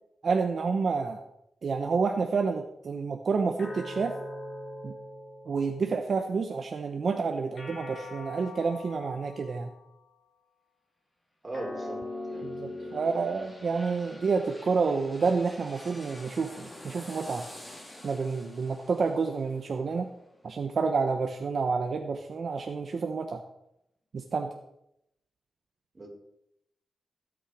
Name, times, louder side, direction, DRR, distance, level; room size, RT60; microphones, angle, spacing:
voice 1, 0.2-1.2 1.6-4.2 4.8-4.9 5.5-9.7 12.4-17.4 18.0-20.1 20.4-23.4 24.1-24.5, right 4 dB, 60° right, 4 dB, 1.0 m, -29 dB
sound 1, 3.6-6.2 7.6-10.1 11.5-14.1, left 2 dB, 50° left, 6.6 m, -42 dB
voice 2, 11.4-12.0 12.3-13.0 14.1-14.2 25.9-26.1, right 1 dB, 25° right, -1 dB, 4.5 m, -40 dB
sound 2, 11.9-21.5 21.9-22.0, left 1 dB, 15° left, 3.4 m, -49 dB
16.0 x 8.9 x 4.9 m, 0.80 s
wide cardioid pair, 105°, 0 cm